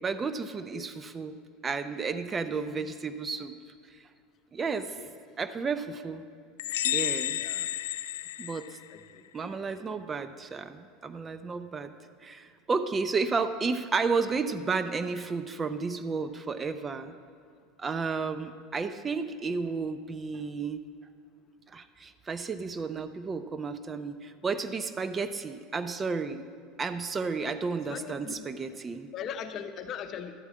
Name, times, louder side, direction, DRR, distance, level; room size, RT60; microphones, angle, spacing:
voice 1, 0.0-1.4 1.6-3.5 4.5-4.9 5.4-6.2 6.8-7.4 8.4-8.8 9.3-11.9 12.2-17.1 17.8-20.8 21.7-26.4 26.8-29.1, right 4 dB, 25° right, 11 dB, 0.5 m, -32 dB
voice 2, 2.5-2.9 5.0-5.1 7.4-7.7 8.9-9.2 11.3-11.4 27.9-28.4 29.1-30.3, left 7 dB, 45° left, 8 dB, 0.8 m, -40 dB
sound 1, 6.6-9.2, left 13 dB, 85° left, 0.3 m, -31 dB
11.5 x 4.8 x 8.4 m, 2.2 s
supercardioid pair, 100°, 0 cm